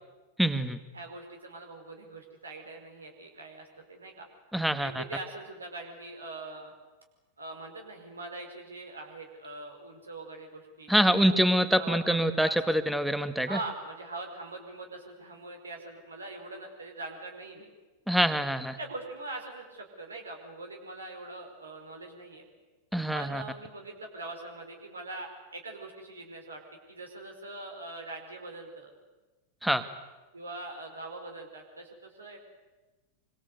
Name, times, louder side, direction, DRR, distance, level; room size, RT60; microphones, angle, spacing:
voice 1, 0.4-0.8 4.5-5.0 10.9-13.6 18.1-18.8 22.9-23.4 29.6-29.9, equal, ahead, 11 dB, 1.8 m, -25 dB
voice 2, 0.9-4.3 4.8-6.7 7.4-11.3 11.7-12.8 13.5-17.7 18.8-22.4 23.1-26.6 26.9-28.9 30.3-32.4, right 2 dB, 75° right, 3 dB, 5.0 m, -42 dB
26.0 x 25.0 x 8.2 m, 1.2 s
figure-of-eight pair, 90°, 0 cm